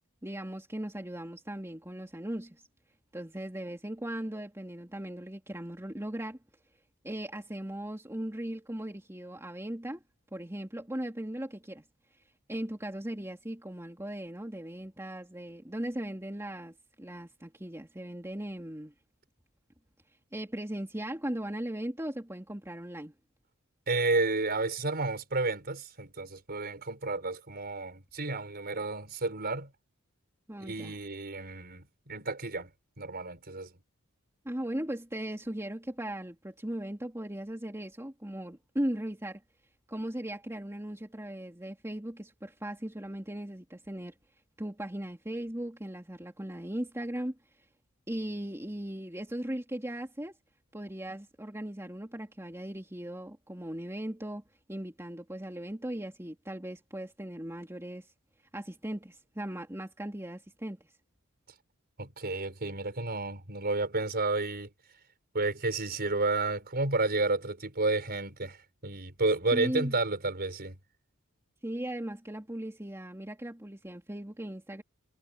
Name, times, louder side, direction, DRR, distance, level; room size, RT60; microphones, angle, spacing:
voice 1, 0.2-2.6 3.1-6.4 7.0-10.0 10.3-11.8 12.5-18.9 20.3-23.1 30.5-30.9 34.4-39.4 39.9-44.1 44.6-47.4 48.1-50.3 50.7-54.4 54.7-58.1 58.5-60.8 69.5-69.9 71.6-74.8, right 1 dB, 10° right, 2.8 m, -38 dB
voice 2, 23.9-29.7 30.6-32.7 33.0-33.7 62.0-64.7 65.3-68.6 68.8-70.8, right 3 dB, 45° right, 4.9 m, -31 dB
head